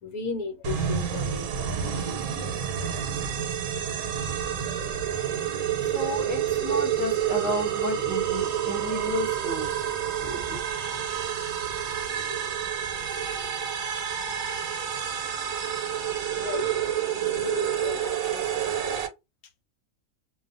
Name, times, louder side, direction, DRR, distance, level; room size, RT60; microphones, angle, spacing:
voice 1, 0.0-3.2 12.0-12.7 16.4-16.8 17.2-19.1, left 4 dB, 85° left, 1.2 m, -37 dB
sound 1, 0.6-19.1, right 9 dB, 75° right, 1.1 m, -29 dB
Animal, 4.5-5.2 5.9-6.6 7.2-7.9 8.6-9.3, right 3 dB, 55° right, 0.8 m, -47 dB
voice 2, 5.1-10.6, left 1 dB, 15° right, 0.7 m, -33 dB
2.6 x 2.3 x 2.4 m
omnidirectional pair, 1.5 m